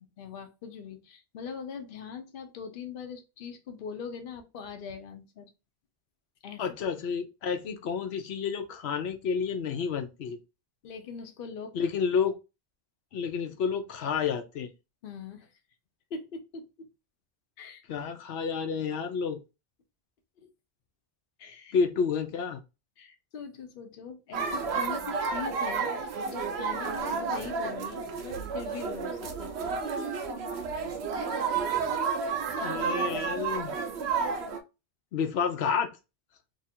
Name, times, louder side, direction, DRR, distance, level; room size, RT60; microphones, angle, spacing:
voice 1, 0.2-5.5 6.4-6.6 10.8-11.8 15.0-15.5 16.1-16.9 17.6-17.8 20.4-20.5 21.4-21.8 23.0-29.8 30.3-30.4 31.4-31.6, left 6 dB, 60° left, 6 dB, 0.8 m, -42 dB
voice 2, 6.6-10.4 11.7-12.3 13.1-14.7 17.9-19.4 21.7-22.6 32.6-33.7 35.1-35.9, left 6 dB, 90° left, 6 dB, 0.9 m, -30 dB
sound 1, 24.3-34.6, right 5 dB, 90° right, 0.9 m, -31 dB
2.9 x 2.4 x 4.2 m, 0.27 s
omnidirectional pair, 1.0 m